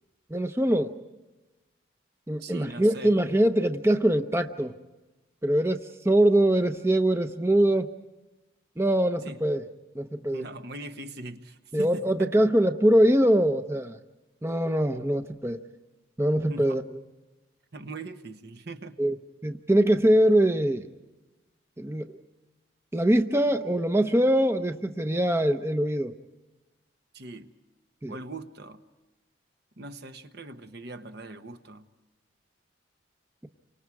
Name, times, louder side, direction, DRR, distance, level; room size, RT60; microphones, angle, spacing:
voice 1, 0.3-0.9 2.3-4.7 5.4-7.9 8.8-9.6 9.9-10.4 11.7-14.0 14.4-15.6 16.2-16.8 19.0-19.2 19.4-20.9 21.8-22.1 22.9-26.1 28.0-28.2, right 1 dB, 15° right, 0.8 m, -23 dB
voice 2, 2.4-3.1 9.2-9.4 10.3-12.3 16.5-16.8 17.7-19.0 27.1-27.5 28.1-28.8 29.8-31.8, right 2 dB, 55° right, 1.2 m, -41 dB
30.0 x 25.0 x 4.8 m
head